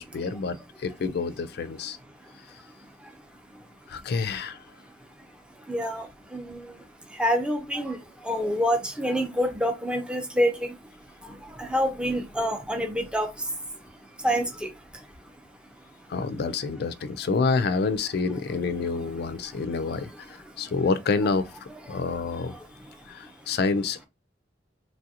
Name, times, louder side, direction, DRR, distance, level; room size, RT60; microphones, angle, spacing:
voice 1, 0.0-2.0 3.9-4.6 16.1-22.6 23.1-24.1, left 4 dB, 60° left, 0.4 m, -28 dB
voice 2, 2.2-4.1 4.8-16.1 18.9-19.1 19.4-20.7 21.8-23.6, equal, 5° right, 0.6 m, -30 dB
3.2 x 2.4 x 2.7 m
head